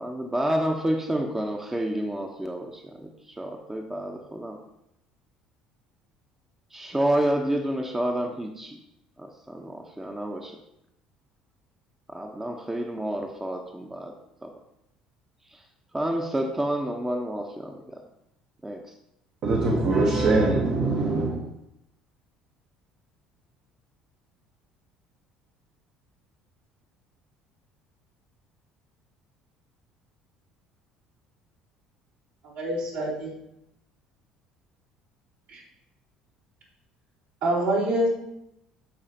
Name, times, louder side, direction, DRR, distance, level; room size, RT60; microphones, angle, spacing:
voice 1, 0.0-4.6 6.7-8.8 9.2-10.6 12.1-14.1 14.4-14.5 15.5-15.6 15.9-18.0 18.6-18.8, right 1 dB, 15° right, 0.9 m, -29 dB
voice 2, 19.4-21.5, right 2 dB, 45° right, 1.2 m, -22 dB
voice 3, 32.5-33.3 35.5-35.6 37.4-38.1, right 1 dB, 65° right, 3.2 m, -25 dB
13.5 x 4.9 x 2.9 m
figure-of-eight pair, 55°, 3 cm